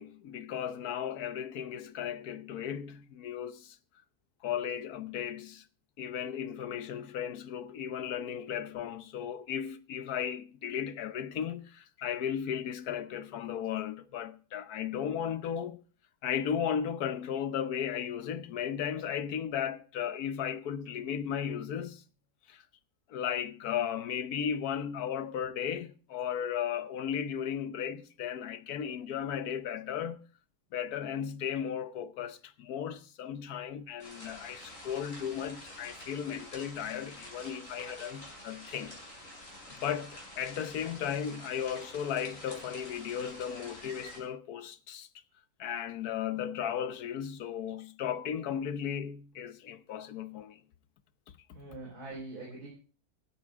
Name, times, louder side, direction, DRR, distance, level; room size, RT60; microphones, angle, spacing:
voice 1, 0.0-3.8 4.4-5.6 6.0-15.8 16.2-22.0 22.5-22.6 23.1-30.2 30.7-39.0 39.7-45.1 45.6-50.6, left 8 dB, 80° left, 1.4 m, -35 dB
sound 1, 34.0-44.2, left 1 dB, 55° left, 6.4 m, -48 dB
voice 2, 51.5-52.7, right 2 dB, 80° right, 4.9 m, -43 dB
16.5 x 13.5 x 3.6 m
omnidirectional pair, 1.6 m